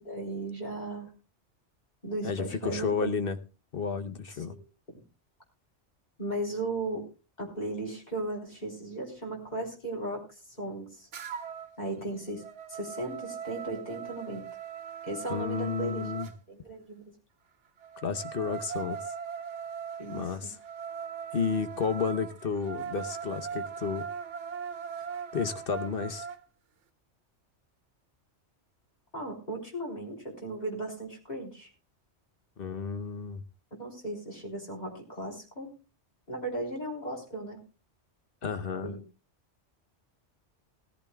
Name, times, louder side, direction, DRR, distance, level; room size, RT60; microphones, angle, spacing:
voice 1, 0.0-1.1 2.0-3.1 4.5-4.7 6.2-7.1 7.4-11.1 11.8-12.4 12.7-14.4 15.1-16.0 16.5-17.0 20.0-20.3 29.1-31.7 33.8-35.7 36.3-37.6 38.8-39.0, right 2 dB, 35° left, 0 dB, 3.8 m, -36 dB
voice 2, 2.2-3.4 3.7-4.6 15.3-16.3 18.0-19.0 20.1-20.6 21.3-24.1 25.3-26.3 32.6-33.4 38.4-38.9, left 5 dB, 55° left, 9 dB, 1.0 m, -32 dB
sound 1, 11.1-11.7 12.1-16.3 17.8-26.4, right 7 dB, 90° right, 1.2 m, -40 dB
19.5 x 14.0 x 2.3 m, 0.29 s
omnidirectional pair, 1.2 m